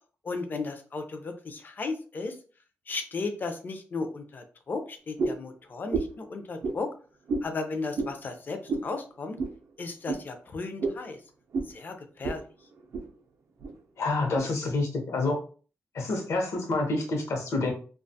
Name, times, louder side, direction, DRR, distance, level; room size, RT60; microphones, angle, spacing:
voice 1, 0.2-2.4 2.9-6.9 7.4-9.4 9.8-11.2 11.7-12.4, left 3 dB, 40° left, 6 dB, 0.4 m, -35 dB
Long Tail Whipping Back and Forth - Foley, 5.2-5.5 5.9-6.2 6.6-6.8 7.3-7.5 7.9-8.1 8.7-8.9 9.4-9.6 10.1-10.2 10.8-11.0 11.5-11.7 12.2-12.4 12.7-13.1 13.6-13.7 14.3-14.5, right 4 dB, 65° right, 0.5 m, -30 dB
voice 2, 14.0-15.4 15.9-17.7, left 2 dB, 65° left, 3 dB, 0.7 m, -28 dB
2.4 x 2.2 x 2.6 m, 0.40 s
wide cardioid pair, 145°, 5 cm